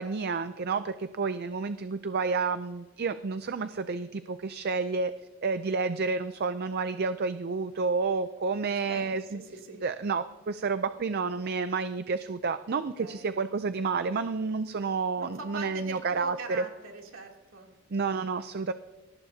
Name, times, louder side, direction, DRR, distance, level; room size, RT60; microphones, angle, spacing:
voice 1, 0.0-5.1 5.4-9.4 9.8-16.6 17.9-18.7, right 4 dB, 45° right, 11 dB, 0.5 m, -30 dB
voice 2, 8.6-9.8 12.7-13.3 15.2-17.7, right 2 dB, 65° right, 1 dB, 3.0 m, -42 dB
22.5 x 18.0 x 2.8 m, 1.2 s
head